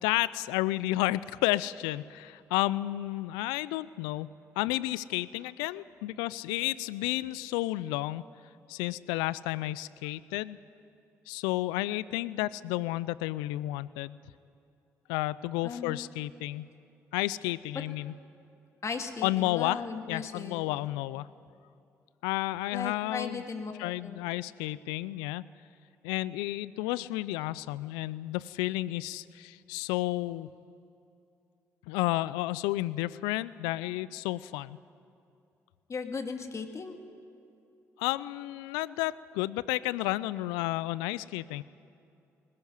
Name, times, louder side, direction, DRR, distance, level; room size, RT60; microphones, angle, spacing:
voice 1, 0.0-4.3 4.6-8.2 8.7-10.6 11.3-14.2 15.1-16.7 17.1-18.1 19.2-19.8 20.1-21.3 22.2-23.4 23.8-25.4 26.0-30.5 31.9-34.8 38.0-41.6, left 17 dB, 80° left, 19 dB, 0.4 m, -31 dB
voice 2, 15.6-16.0 18.8-20.7 22.7-24.2 35.9-37.0, left 5 dB, 45° left, 5 dB, 2.2 m, -37 dB
20.5 x 15.5 x 9.4 m, 2.7 s
hypercardioid pair, 50°, 7 cm